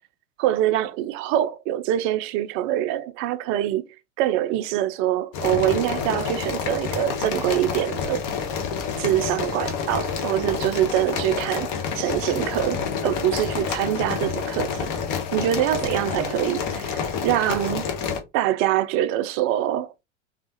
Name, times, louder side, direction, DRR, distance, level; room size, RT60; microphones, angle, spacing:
voice 1, 0.4-3.8 4.2-8.2 9.0-11.7 12.0-14.9 15.3-17.9 18.3-19.9, right 12 dB, 40° right, 0.4 m, -24 dB
sound 1, 5.3-18.2, left 6 dB, 45° left, 0.9 m, -28 dB
3.4 x 2.4 x 2.7 m
hypercardioid pair, 85°, 35 cm